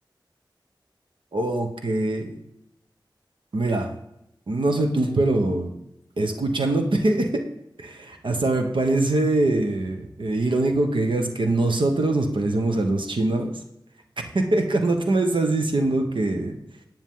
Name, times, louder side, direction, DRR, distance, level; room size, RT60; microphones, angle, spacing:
voice 1, 1.3-2.4 3.5-3.9 4.5-5.7 6.2-7.4 7.8-13.6 14.2-16.6, right 2 dB, 85° right, 4 dB, 1.2 m, -23 dB
10.0 x 9.1 x 3.8 m, 0.84 s
wide cardioid pair, 60°, 8 cm